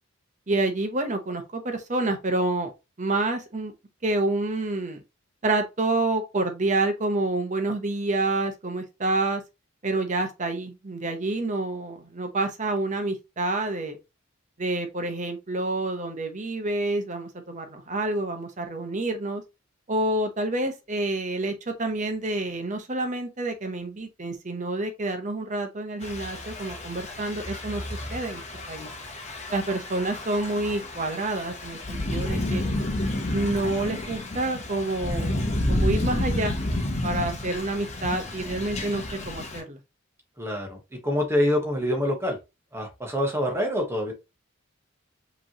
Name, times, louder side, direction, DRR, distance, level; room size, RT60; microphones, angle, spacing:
voice 1, 0.5-2.7 3.0-3.7 4.0-5.0 5.4-9.4 9.8-14.0 14.6-19.4 19.9-28.9 29.5-32.6 33.3-36.5 37.0-39.8, right 2 dB, 35° right, 0.9 m, -28 dB
Thunder / Rain, 26.0-39.6, left 1 dB, 35° left, 0.9 m, -30 dB
voice 2, 40.4-42.4 42.7-44.1, left 1 dB, 15° right, 1.1 m, -26 dB
5.1 x 3.1 x 2.9 m
head